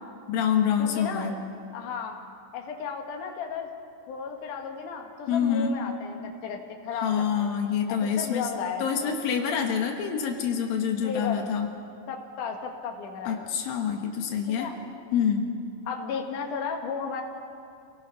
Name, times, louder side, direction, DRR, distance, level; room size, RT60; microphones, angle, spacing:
voice 1, 0.3-1.3 5.3-5.8 7.0-8.5 8.8-11.7 13.3-14.7 15.1-15.5, left 7 dB, 85° left, 3 dB, 3.3 m, -26 dB
voice 2, 0.8-1.4 1.7-2.2 2.5-3.7 4.1-6.2 6.4-7.5 7.9-9.1 11.0-11.4 12.1-13.4 14.6-14.8 15.9-17.2, left 6 dB, 65° left, 2 dB, 3.1 m, -34 dB
29.0 x 19.0 x 5.7 m, 2.3 s
omnidirectional pair, 4.0 m